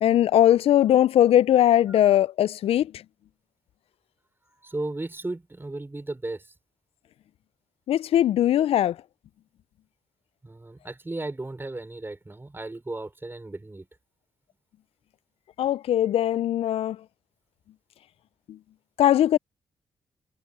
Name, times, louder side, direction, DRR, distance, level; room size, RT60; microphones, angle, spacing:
voice 1, 0.0-3.0 7.9-9.0 15.6-17.0 18.5-18.6 19.0-19.4, left 11 dB, 70° left, 0.4 m, -20 dB
voice 2, 4.6-6.5 10.4-13.9, right 2 dB, 20° right, 3.7 m, -35 dB
supercardioid pair, 50°, 10 cm